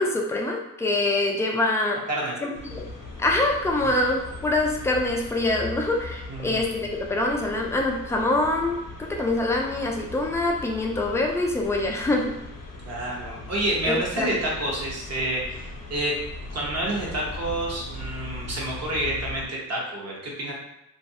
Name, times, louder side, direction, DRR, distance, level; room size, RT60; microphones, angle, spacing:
voice 1, 0.0-2.0 2.4-2.9 3.2-12.3 13.9-14.4, left 2 dB, 10° left, 0 dB, 0.3 m, -25 dB
sound 1, 2.5-19.5, left 2 dB, 70° left, 0.6 m, -39 dB
voice 2, 6.3-6.7 12.8-16.1 16.5-20.5, right 1 dB, 45° right, -3 dB, 0.8 m, -29 dB
2.4 x 2.3 x 2.6 m, 0.87 s
wide cardioid pair, 105°, 35 cm